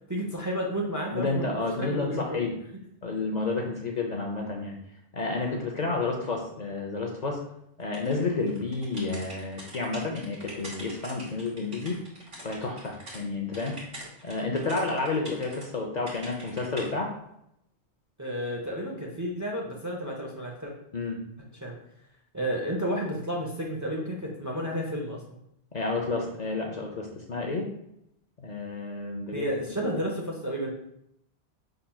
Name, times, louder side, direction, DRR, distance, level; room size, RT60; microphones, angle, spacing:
voice 1, 0.1-1.5 1.8-2.5 18.2-20.7 21.6-21.8 22.3-25.2 29.3-30.7, equal, 20° right, -2 dB, 0.6 m, -31 dB
voice 2, 1.1-2.5 3.0-4.8 5.1-7.4 7.8-12.0 12.4-13.8 14.2-17.1 20.9-21.2 25.7-27.7 28.4-29.5 29.8-29.9, left 3 dB, 50° left, 0 dB, 0.6 m, -30 dB
sound 1, 7.9-13.2 13.5-15.7 16.1-16.9, right 1 dB, 60° right, 1.9 m, -44 dB
5.6 x 3.8 x 2.3 m, 0.77 s
omnidirectional pair, 1.1 m